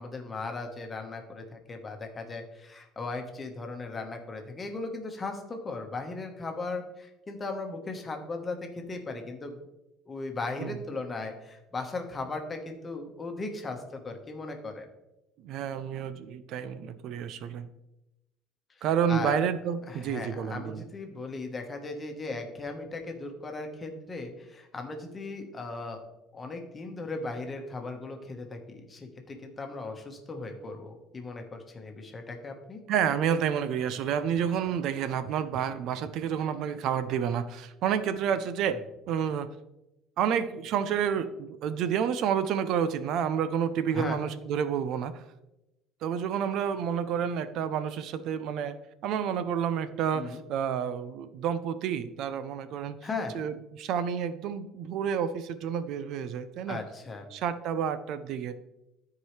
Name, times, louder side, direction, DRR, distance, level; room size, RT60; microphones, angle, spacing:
voice 1, 0.0-9.7 10.1-14.9 19.1-19.4 19.9-26.0 26.3-32.8 43.9-44.2 50.1-50.4 53.0-53.4 56.7-57.3, left 3 dB, 20° left, 4 dB, 1.2 m, -37 dB
voice 2, 15.4-17.7 18.8-20.8 32.9-38.8 39.1-39.5 40.2-45.2 46.0-48.8 49.0-53.0 53.3-56.8 57.3-58.5, right 8 dB, 55° right, 13 dB, 0.4 m, -29 dB
13.5 x 4.7 x 3.2 m, 0.93 s
cardioid pair, 150°, 0 cm